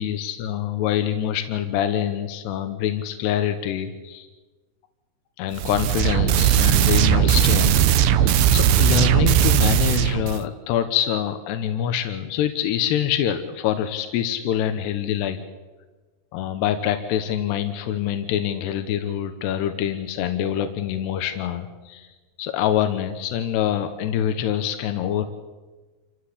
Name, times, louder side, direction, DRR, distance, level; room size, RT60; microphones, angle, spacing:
voice 1, 0.0-4.3 5.4-15.4 16.3-22.1 22.4-25.3, left 10 dB, 85° left, 8 dB, 3.3 m, -25 dB
sound 1, 5.5-10.4, right 10 dB, 75° right, 2.6 m, -18 dB
27.5 x 15.5 x 8.6 m, 1.3 s
omnidirectional pair, 4.7 m